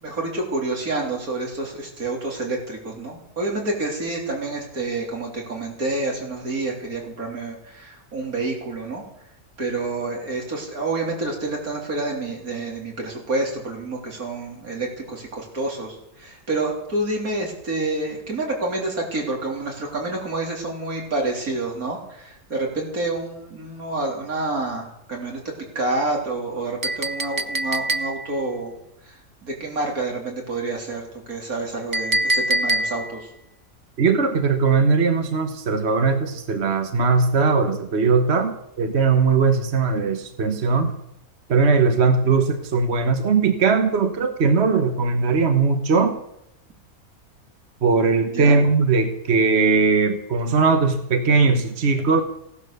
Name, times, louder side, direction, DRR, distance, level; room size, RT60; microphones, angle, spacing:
voice 1, 0.0-9.0 9.6-28.7 29.0-29.2 29.4-33.3 48.2-48.6, right 2 dB, 75° right, 0 dB, 4.0 m, -28 dB
Chink clink, 26.8-28.4 31.9-33.2, right 1 dB, 30° right, 0.3 m, -24 dB
voice 2, 34.0-40.9 41.5-46.2 47.8-52.2, right 4 dB, 50° right, 7 dB, 1.3 m, -19 dB
16.5 x 11.5 x 6.7 m, 0.79 s
omnidirectional pair, 1.6 m